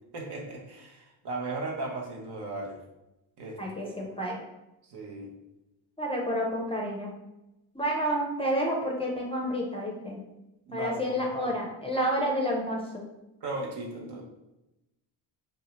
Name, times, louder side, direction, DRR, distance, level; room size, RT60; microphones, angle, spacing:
voice 1, 0.1-2.8 3.4-3.9 4.8-5.3 10.7-11.5 13.4-14.2, right 2 dB, 55° right, 0 dB, 0.8 m, -37 dB
voice 2, 3.6-4.4 6.0-7.1 7.7-10.2 10.7-13.0, equal, 10° left, -2 dB, 0.5 m, -29 dB
2.6 x 2.2 x 2.9 m, 0.96 s
supercardioid pair, 55°, 48 cm